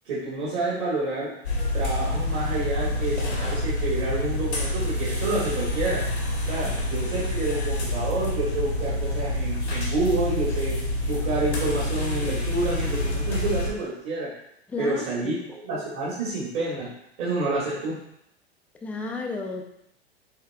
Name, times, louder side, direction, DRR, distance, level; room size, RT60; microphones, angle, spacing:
voice 1, 0.0-1.3 1.7-6.0 6.5-10.8 11.1-14.3 14.8-16.9 17.2-18.0, right 2 dB, 45° right, -6 dB, 1.6 m, -28 dB
sound 1, 1.4-13.7, left 1 dB, 85° left, 1.3 m, -27 dB
voice 2, 14.7-15.0 18.8-19.6, left 4 dB, 5° left, 1 dB, 0.3 m, -31 dB
7.4 x 3.1 x 2.3 m, 0.77 s
figure-of-eight pair, 95°, 32 cm